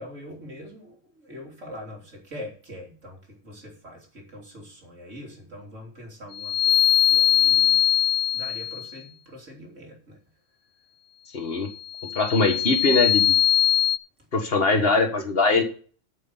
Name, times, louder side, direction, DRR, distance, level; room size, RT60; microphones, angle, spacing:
voice 1, 0.0-7.8 8.3-10.2, left 1 dB, 75° right, 0 dB, 3.5 m, -43 dB
sound 1, 6.3-8.9 11.9-14.0, left 11 dB, 75° left, 1.0 m, -21 dB
voice 2, 11.3-11.7 12.1-13.3 14.3-15.6, left 3 dB, 50° left, 5 dB, 1.7 m, -21 dB
9.2 x 6.5 x 7.1 m, 0.43 s
omnidirectional pair, 1.3 m